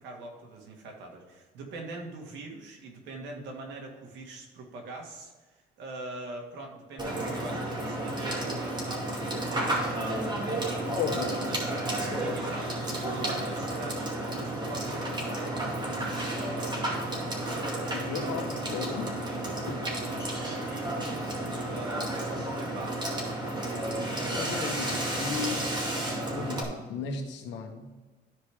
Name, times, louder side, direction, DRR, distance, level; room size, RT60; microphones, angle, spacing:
voice 1, 0.0-17.2 19.2-21.2 21.6-23.1 24.2-24.8 25.5-25.6, right 2 dB, 90° right, 1 dB, 1.9 m, -43 dB
Water / Water tap faucet / Sink (filling or washing), 7.0-26.6, right 1 dB, 25° right, 2.3 m, -32 dB
voice 2, 10.9-11.4 17.9-19.2 24.4-25.7 26.3-27.9, left 6 dB, 85° left, 4 dB, 1.3 m, -35 dB
13.0 x 5.0 x 3.6 m, 1.3 s
cardioid pair, 100°, 18 cm